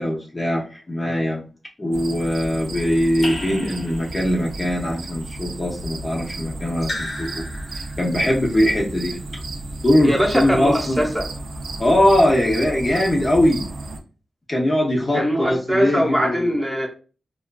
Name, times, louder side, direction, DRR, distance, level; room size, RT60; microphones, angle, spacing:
voice 1, 0.0-1.4 1.8-7.4 7.7-9.1 9.8-11.0 11.8-13.7 14.5-16.5, left 1 dB, 25° left, 0.6 m, -21 dB
sound 1, 1.9-14.0, right 2 dB, 90° right, 0.4 m, -33 dB
Raindrop / Drip, 3.2-4.5 6.8-8.2, left 1 dB, 60° left, 0.7 m, -33 dB
voice 2, 10.0-11.3 15.1-16.9, equal, 10° right, 0.8 m, -22 dB
2.4 x 2.3 x 2.2 m
wide cardioid pair, 95°, 0 cm